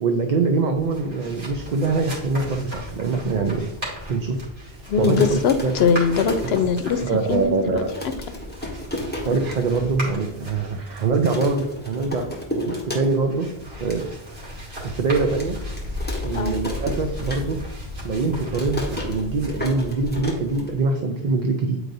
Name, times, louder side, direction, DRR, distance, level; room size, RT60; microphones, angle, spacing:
voice 1, 0.0-3.7 4.1-4.5 4.7-5.7 6.4-6.5 7.0-7.9 9.3-12.3 12.5-13.5 13.8-15.6 16.2-17.6 18.0-21.8, right 3 dB, 55° right, 4 dB, 0.6 m, -24 dB
sound 1, 0.8-20.7, left 1 dB, 85° right, 2.5 m, -36 dB
voice 2, 4.9-7.0 7.3-7.8 16.3-16.6, left 6 dB, 85° left, 10 dB, 0.8 m, -21 dB
sound 2, 5.0-7.2 7.5-7.6 7.8-9.8 10.2-10.3 10.5-10.9 11.2-13.4 13.7-14.0 14.5-14.6 15.4-17.8 18.1-21.1, left 1 dB, 10° left, 1.4 m, -33 dB
9.0 x 4.7 x 2.6 m, 1.0 s
omnidirectional pair, 1.0 m